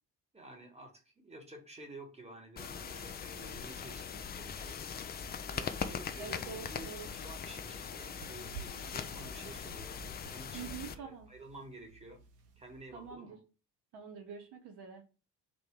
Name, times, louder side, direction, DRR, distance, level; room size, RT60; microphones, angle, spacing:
voice 1, 0.3-4.8 5.5-9.9 10.3-12.2 12.6-13.4, right 2 dB, 15° right, 3 dB, 1.3 m, -51 dB
sound 1, 2.6-10.9, left 7 dB, 25° left, 0.4 m, -41 dB
voice 2, 6.2-7.3 10.5-11.3 12.9-13.4 13.9-15.0, right 6 dB, 60° right, 4 dB, 0.9 m, -46 dB
sound 2, 6.5-13.2, right 6 dB, 85° right, 0.7 m, -54 dB
4.2 x 2.7 x 3.6 m, 0.33 s
figure-of-eight pair, 40°, 46 cm